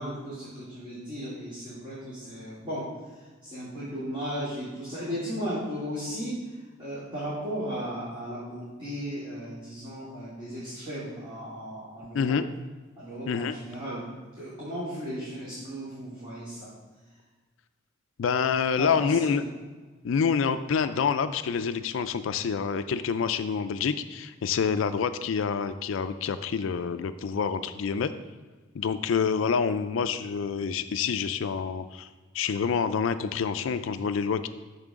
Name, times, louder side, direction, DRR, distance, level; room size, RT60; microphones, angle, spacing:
voice 1, 0.0-2.8 3.1-6.4 6.8-12.4 13.0-14.1 14.4-16.7 18.8-19.4, equal, 25° right, -11 dB, 2.6 m, -35 dB
voice 2, 12.1-12.4 13.3-13.5 18.2-19.4 20.0-28.1 28.7-32.1 32.3-34.5, left 6 dB, 70° left, 11 dB, 0.4 m, -27 dB
8.9 x 6.7 x 3.6 m, 1.3 s
head